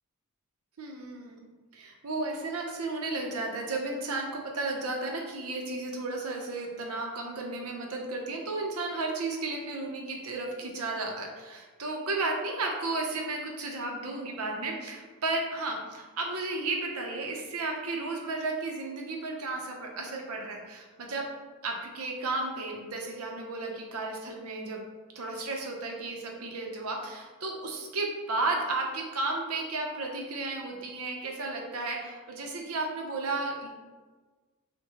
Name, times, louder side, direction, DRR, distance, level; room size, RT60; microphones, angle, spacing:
voice 1, 0.8-1.4 1.7-21.3 21.6-24.8 25.1-33.7, right 3 dB, 75° right, 1 dB, 0.7 m, -33 dB
6.3 x 2.2 x 2.9 m, 1.3 s
head